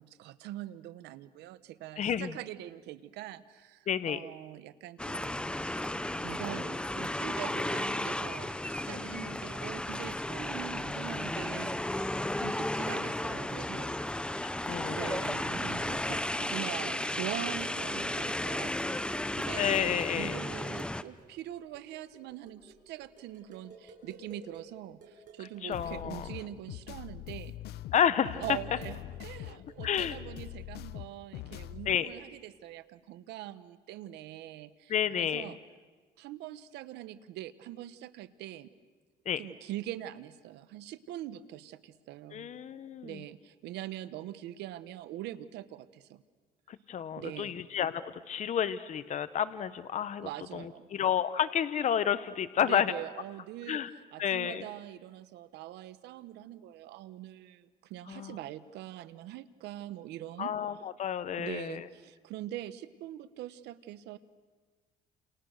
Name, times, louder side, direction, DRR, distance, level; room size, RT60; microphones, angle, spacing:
voice 1, 0.0-12.1 12.4-14.4 14.9-27.6 28.4-35.6 36.2-38.7 39.4-42.5 43.0-46.2 47.1-47.5 50.2-50.9 52.5-53.8 54.1-60.5 61.4-64.2, right 13 dB, 85° right, 14 dB, 1.2 m, -43 dB
voice 2, 2.0-2.3 3.9-4.2 8.9-9.4 14.4-15.1 19.6-20.3 25.6-26.3 27.9-28.4 29.8-30.2 31.9-32.1 34.9-35.5 39.3-39.4 42.3-43.2 46.7-50.6 50.9-52.9 53.7-53.9 54.2-54.6 58.1-58.4 60.4-61.8, left 9 dB, 45° left, 13 dB, 1.0 m, -31 dB
sound 1, 5.0-21.0, left 1 dB, 5° left, 0.8 m, -34 dB
sound 2, 14.8-15.3 15.6-16.0 16.7-24.7 25.0-27.2 27.4-31.0, right 3 dB, 50° right, 6.7 m, -57 dB
sound 3, 25.7-31.9, left 14 dB, 75° left, 0.9 m, -43 dB
29.5 x 28.5 x 6.6 m, 1.4 s
cardioid pair, 110°, 17 cm